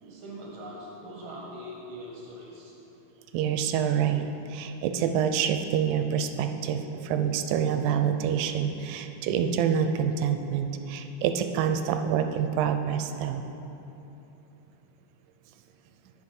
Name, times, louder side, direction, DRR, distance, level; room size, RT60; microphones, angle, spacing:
voice 1, 0.0-2.8, equal, 55° right, -4 dB, 1.6 m, -42 dB
voice 2, 3.3-13.4, right 8 dB, 85° right, 7 dB, 1.9 m, -27 dB
14.5 x 5.1 x 4.3 m, 2.9 s
omnidirectional pair, 3.4 m